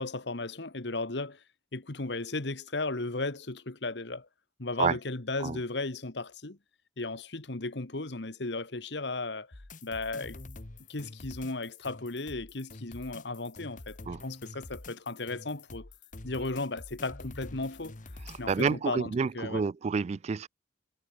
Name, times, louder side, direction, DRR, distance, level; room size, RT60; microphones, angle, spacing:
voice 1, 0.0-1.4 1.7-4.3 4.6-6.6 7.0-10.4 10.9-15.9 16.2-17.9 18.4-19.6, left 2 dB, 65° left, 1.5 m, -35 dB
sound 1, 9.5-18.6, left 2 dB, 45° left, 1.2 m, -47 dB
voice 2, 18.3-20.5, right 5 dB, 35° right, 0.3 m, -29 dB
head